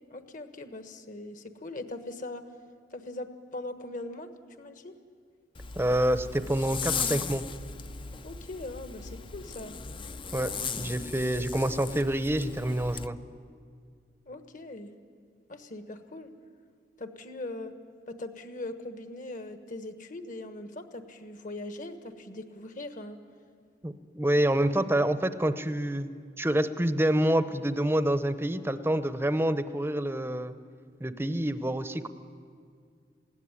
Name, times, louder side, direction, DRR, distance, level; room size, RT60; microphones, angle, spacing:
voice 1, 0.1-2.4 2.9-4.3 4.6-5.0 8.2-9.7 11.5-11.7 14.3-14.9 15.5-16.3 17.0-17.7 18.1-23.2, left 2 dB, 50° left, 8 dB, 1.3 m, -40 dB
Zipper (clothing), 5.5-13.1, left 6 dB, 30° left, 0.5 m, -37 dB
voice 2, 5.8-7.4 10.3-10.5 10.8-13.2 23.8-30.5 31.0-32.1, right 1 dB, 15° right, 11 dB, 0.7 m, -27 dB
20.5 x 16.5 x 9.8 m, 2.1 s
head